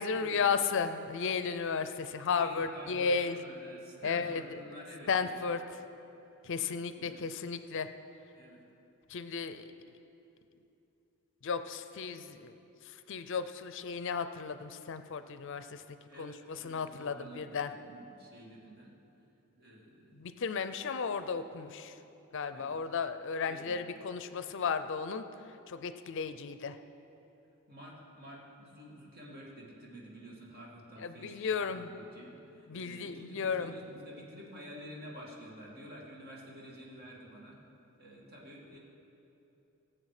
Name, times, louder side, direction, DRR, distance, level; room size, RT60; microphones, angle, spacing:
voice 1, 0.0-3.4 4.0-4.4 5.1-5.6 6.4-7.9 9.1-9.7 11.4-12.6 12.8-15.8 16.2-17.7 20.1-21.9 22.3-25.2 25.7-26.8 31.0-31.9 32.7-33.7, left 5 dB, 60° left, 11 dB, 0.5 m, -34 dB
voice 2, 2.2-5.5 7.0-7.2 8.3-8.6 16.1-18.9 19.6-20.3 22.5-22.8 23.5-23.8 27.7-37.6 38.0-38.8, equal, 45° right, -3 dB, 2.2 m, -50 dB
17.5 x 7.6 x 4.9 m, 3.0 s
head